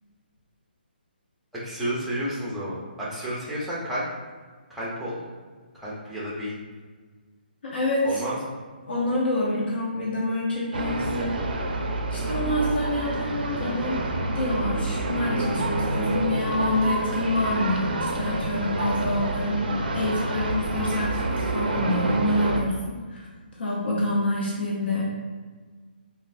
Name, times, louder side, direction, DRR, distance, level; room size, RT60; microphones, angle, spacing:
voice 1, 1.5-4.0 4.7-5.2 5.7-6.6 8.0-8.4, equal, ahead, -8 dB, 0.5 m, -31 dB
voice 2, 7.6-8.2 8.9-11.3 12.1-14.0 14.3-23.2 23.6-25.0, left 1 dB, 70° left, -5 dB, 0.7 m, -27 dB
sound 1, 10.7-22.6, right 2 dB, 60° right, 0.4 m, -28 dB
3.1 x 2.4 x 2.4 m, 1.4 s
hypercardioid pair, 165°, 6 cm